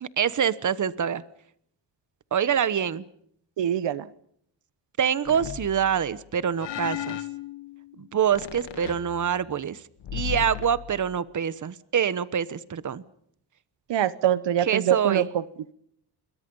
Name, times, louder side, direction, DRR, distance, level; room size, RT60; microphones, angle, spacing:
voice 1, 0.0-1.2 2.3-3.0 5.0-7.2 8.0-9.8 10.1-13.0 14.6-15.3, right 8 dB, 45° right, 17 dB, 1.1 m, -25 dB
voice 2, 3.6-4.1 13.9-15.4, right 11 dB, 80° right, 17 dB, 1.1 m, -24 dB
sound 1, 5.3-6.1 6.6-8.0 8.3-9.6 10.0-11.2, left 11 dB, 80° left, 1.9 m, -36 dB
28.5 x 23.0 x 5.5 m, 0.68 s
wide cardioid pair, 115°, 42 cm